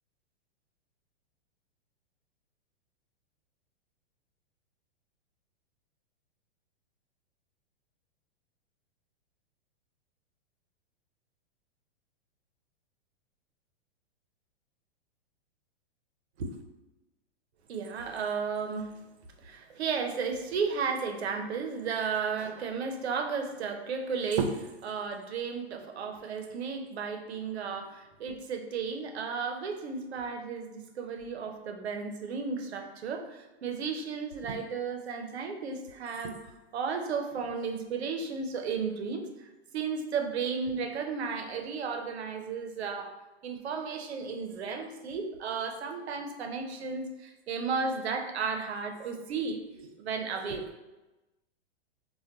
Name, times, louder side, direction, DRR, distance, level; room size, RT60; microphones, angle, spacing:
voice 1, 17.7-18.9 19.4-36.4 36.7-43.1 43.4-50.6, right 5 dB, 90° right, 5 dB, 0.5 m, -34 dB
2.2 x 2.2 x 3.7 m, 1.0 s
hypercardioid pair, 120°, 31 cm